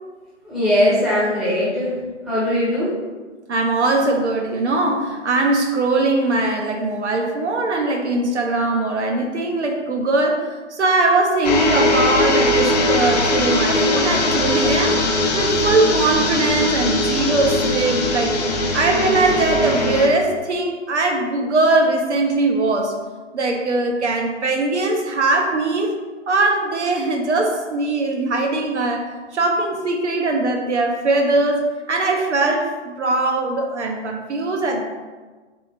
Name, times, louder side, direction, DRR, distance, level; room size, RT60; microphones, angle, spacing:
voice 1, 0.4-3.0, left 1 dB, ahead, -11 dB, 0.8 m, -20 dB
voice 2, 3.5-15.0 15.3-18.4 18.7-22.9 23.3-25.9 26.3-34.8, right 2 dB, 65° right, 2 dB, 0.9 m, -20 dB
sound 1, 11.4-20.1, left 2 dB, 35° left, 0.5 m, -20 dB
3.7 x 3.3 x 4.2 m, 1.3 s
figure-of-eight pair, 140°, 37 cm